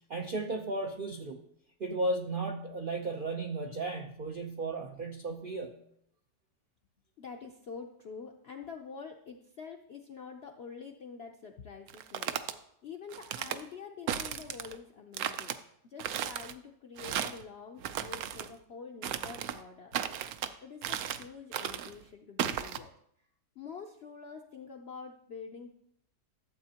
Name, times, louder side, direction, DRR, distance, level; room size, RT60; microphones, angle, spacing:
voice 1, 0.1-1.4 1.8-5.8, right 2 dB, 90° right, 3 dB, 0.4 m, -35 dB
voice 2, 7.2-12.5 12.8-15.5 15.8-20.0 20.6-22.9 23.2-23.3 23.6-25.7, left 5 dB, 70° left, 3 dB, 0.6 m, -46 dB
sound 1, 11.9-12.5 13.1-13.6 14.1-14.8 15.1-15.6 16.0-16.5 17.0-17.4 17.8-18.5 19.0-19.6 19.9-20.5 20.8-21.3 21.5-21.9 22.4-22.8, right 10 dB, 70° right, 0.9 m, -35 dB
13.0 x 7.5 x 2.8 m, 0.71 s
omnidirectional pair, 1.8 m